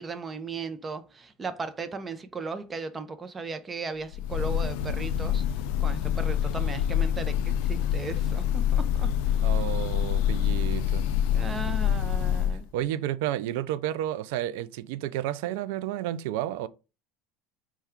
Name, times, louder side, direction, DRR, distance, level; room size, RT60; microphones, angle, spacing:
voice 1, 0.0-5.4 5.8-9.3 11.3-12.7, right 4 dB, 20° right, 0.5 m, -36 dB
Breathing / Bird, 4.1-12.7, left 9 dB, 75° left, 0.3 m, -26 dB
voice 2, 9.4-11.1 12.7-16.7, right 12 dB, 80° right, 0.3 m, -31 dB
4.3 x 2.3 x 3.5 m
cardioid pair, 135°, 0 cm